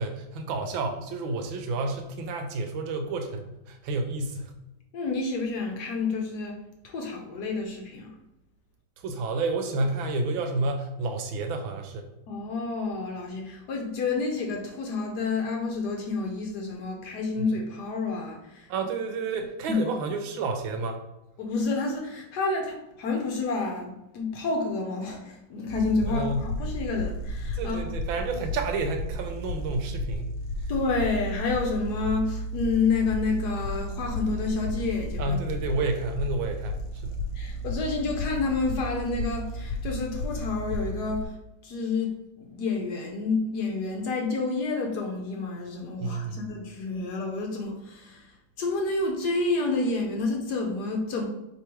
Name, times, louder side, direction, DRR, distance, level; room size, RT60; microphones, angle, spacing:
voice 1, 0.0-4.5 9.0-12.1 18.7-21.0 26.1-26.4 27.5-30.3 35.2-37.2 46.0-46.4, right 3 dB, 90° right, 5 dB, 1.4 m, -30 dB
voice 2, 4.9-6.6 6.8-8.1 12.3-18.7 19.7-19.8 21.4-27.9 30.7-35.4 37.3-41.4 41.6-51.2, left 3 dB, 65° left, 1 dB, 1.1 m, -29 dB
sound 1, 25.7-41.2, left 1 dB, 85° left, 1.3 m, -33 dB
4.6 x 3.4 x 3.0 m, 0.92 s
omnidirectional pair, 2.1 m